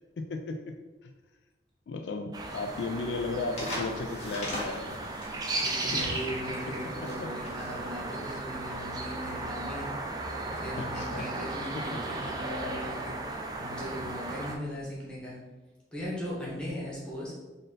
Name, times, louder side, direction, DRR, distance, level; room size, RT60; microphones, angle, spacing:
voice 1, 0.2-1.1 1.9-5.0 5.9-6.0 7.2-7.3 10.8-11.2, left 3 dB, 70° left, 5 dB, 0.3 m, -35 dB
sound 1, 2.3-14.6, right 2 dB, 20° right, 0.4 m, -36 dB
sound 2, 3.5-9.0, equal, 35° left, 1.2 m, -40 dB
voice 2, 5.6-9.9 10.4-13.1 13.6-15.4 15.9-17.3, equal, 5° left, -7 dB, 1.1 m, -38 dB
Bowed string instrument, 5.9-8.7, equal, 60° right, 0.8 m, -49 dB
3.9 x 2.6 x 3.8 m, 1.2 s
head